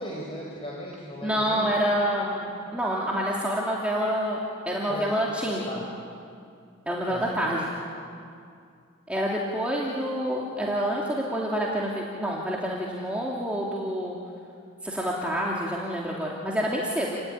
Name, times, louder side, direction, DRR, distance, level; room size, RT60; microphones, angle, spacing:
voice 1, 0.0-1.7 4.9-5.1 5.6-5.9 7.1-7.4, equal, 25° left, -3 dB, 4.5 m, -36 dB
voice 2, 1.2-5.7 6.9-7.7 9.1-14.2 14.8-17.2, equal, 5° right, -4 dB, 2.7 m, -27 dB
29.5 x 18.5 x 9.9 m, 2.3 s
head